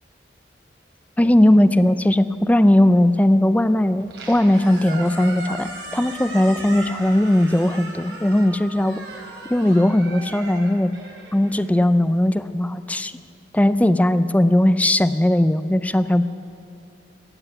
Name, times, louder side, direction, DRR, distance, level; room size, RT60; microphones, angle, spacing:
voice 1, 1.2-9.0 9.5-10.9 11.3-13.1 13.5-16.2, left 1 dB, 10° left, 11 dB, 0.4 m, -18 dB
Squeak, 4.0-12.2, right 2 dB, 80° right, 3.1 m, -37 dB
16.0 x 7.9 x 10.0 m, 2.5 s
head